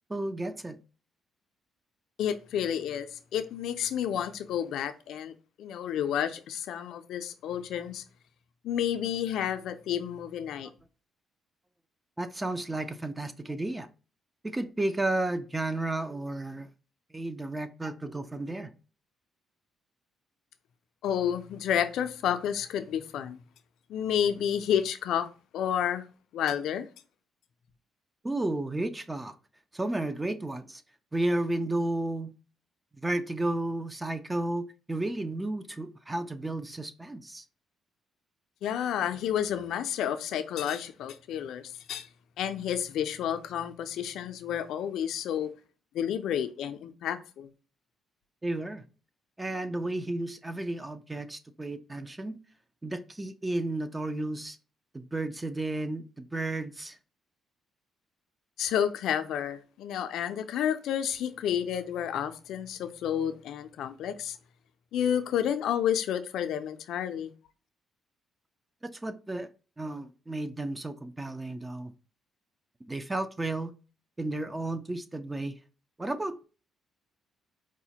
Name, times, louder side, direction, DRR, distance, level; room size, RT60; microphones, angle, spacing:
voice 1, 0.1-0.8 12.2-13.9 14.4-16.7 17.1-18.7 28.2-29.3 29.7-30.8 31.1-32.3 32.9-37.4 48.4-48.8 49.4-52.4 52.8-54.6 54.9-57.0 68.8-69.5 69.8-71.9 72.9-73.7 74.2-75.5 76.0-76.4, right 2 dB, 15° right, 0.4 m, -32 dB
voice 2, 2.2-8.0 8.6-10.7 21.0-23.4 23.9-25.3 25.5-26.1 26.3-26.9 38.6-42.1 42.4-45.5 45.9-47.5 58.6-64.4 64.9-67.3, left 9 dB, 80° left, 0.4 m, -30 dB
4.8 x 2.1 x 2.8 m
cardioid pair, 90°, 0 cm